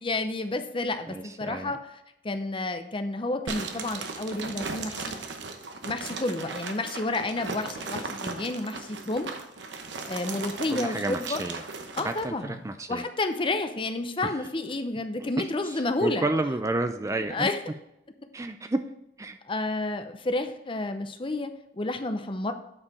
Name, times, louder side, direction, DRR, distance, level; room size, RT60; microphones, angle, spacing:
voice 1, 0.0-1.8 2.2-5.1 5.9-9.4 10.1-11.4 12.0-12.6 12.9-16.2 17.3-17.6 19.5-22.5, left 2 dB, 30° left, 8 dB, 0.7 m, -30 dB
voice 2, 1.1-1.7 10.7-11.6 12.0-13.0 14.2-14.3 15.2-17.5 18.3-18.8 19.2-19.4, right 2 dB, 15° right, 8 dB, 0.4 m, -31 dB
sound 1, 3.5-12.3, right 4 dB, 80° right, 1.0 m, -37 dB
8.6 x 4.8 x 4.8 m, 0.84 s
head